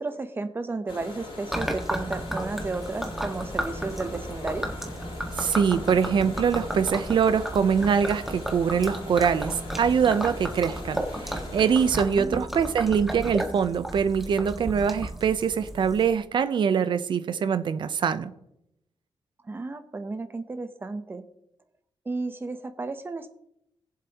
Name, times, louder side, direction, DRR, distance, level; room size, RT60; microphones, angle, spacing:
voice 1, 0.0-4.7 12.1-12.5 19.4-21.2 22.1-23.3, right 3 dB, 25° right, 10 dB, 0.8 m, -33 dB
sound 1, 0.9-12.1, left 2 dB, 75° left, 3.8 m, -42 dB
Gurgling / Liquid, 1.5-16.1, equal, 5° right, 1.6 m, -34 dB
voice 2, 5.4-18.3, right 7 dB, 55° right, 12 dB, 0.7 m, -24 dB
20.0 x 7.5 x 2.9 m, 0.79 s
wide cardioid pair, 160°, 9 cm